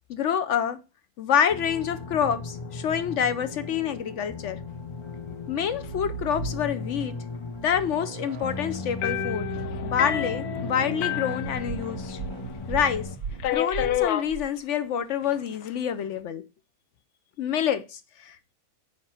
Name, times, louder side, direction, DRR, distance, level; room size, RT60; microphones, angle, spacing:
voice 1, 0.1-0.8 1.2-4.6 5.5-7.1 7.6-9.5 9.8-12.2 12.7-13.1 13.5-16.4 17.4-18.5, left 8 dB, 65° left, 0.8 m, -27 dB
sound 1, 1.5-13.2, left 3 dB, 45° left, 0.3 m, -37 dB
sound 2, 5.6-7.0 7.5-14.4, right 6 dB, 75° right, 1.3 m, -38 dB
sound 3, 9.0-12.2 12.5-12.6 13.4-14.3 15.2-15.7, left 12 dB, 85° left, 1.2 m, -30 dB
5.3 x 4.9 x 5.6 m
omnidirectional pair, 1.6 m